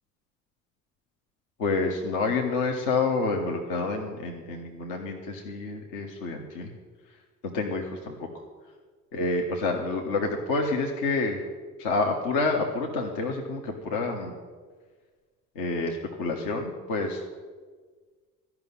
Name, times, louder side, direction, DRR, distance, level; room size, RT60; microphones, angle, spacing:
voice 1, 1.6-6.7 7.4-8.3 9.1-11.4 11.8-14.4 15.5-17.2, left 3 dB, 65° left, 1 dB, 1.3 m, -28 dB
12.5 x 6.0 x 9.4 m, 1.5 s
figure-of-eight pair, 45°, 41 cm